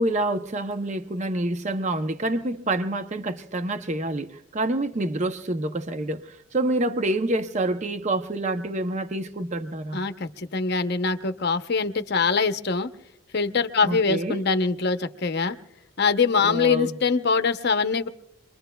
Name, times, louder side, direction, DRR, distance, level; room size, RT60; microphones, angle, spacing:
voice 1, 0.0-10.0 13.8-14.4 16.4-17.0, right 1 dB, 35° right, 0.6 m, -27 dB
voice 2, 9.9-12.9 13.3-15.6 16.0-18.1, left 4 dB, 50° left, 0.7 m, -23 dB
27.5 x 22.5 x 2.2 m
head